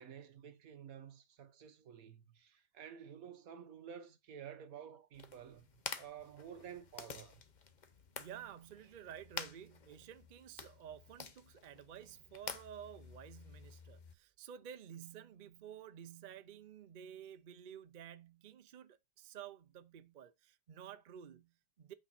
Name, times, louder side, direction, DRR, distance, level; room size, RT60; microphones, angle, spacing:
voice 1, 0.0-7.4, right 8 dB, 60° right, 1.3 m, -52 dB
sound 1, 5.1-14.1, left 5 dB, 45° left, 0.6 m, -50 dB
voice 2, 8.2-21.9, right 9 dB, 85° right, 0.4 m, -52 dB
8.4 x 5.1 x 4.3 m
omnidirectional pair, 1.8 m